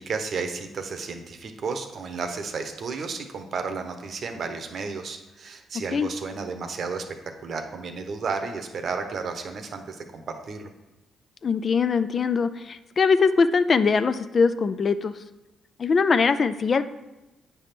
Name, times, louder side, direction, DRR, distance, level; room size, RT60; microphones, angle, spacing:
voice 1, 0.0-7.0 7.4-10.7, right 4 dB, 55° right, 6 dB, 0.8 m, -32 dB
voice 2, 11.4-15.1 15.8-16.8, left 5 dB, 45° left, 12 dB, 0.4 m, -22 dB
8.3 x 3.5 x 5.8 m, 1.0 s
cardioid pair, 90°, 0 cm